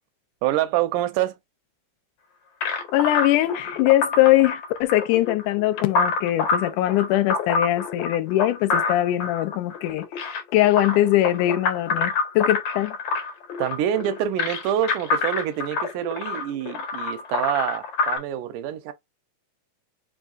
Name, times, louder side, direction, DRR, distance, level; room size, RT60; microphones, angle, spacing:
voice 1, 0.4-1.4 13.6-18.9, right 11 dB, 85° right, 2.2 m, -26 dB
sound 1, 2.6-18.2, left 4 dB, 65° left, 2.5 m, -27 dB
voice 2, 2.9-13.0, left 15 dB, 80° left, 2.2 m, -21 dB
5.5 x 3.3 x 2.4 m
omnidirectional pair, 3.6 m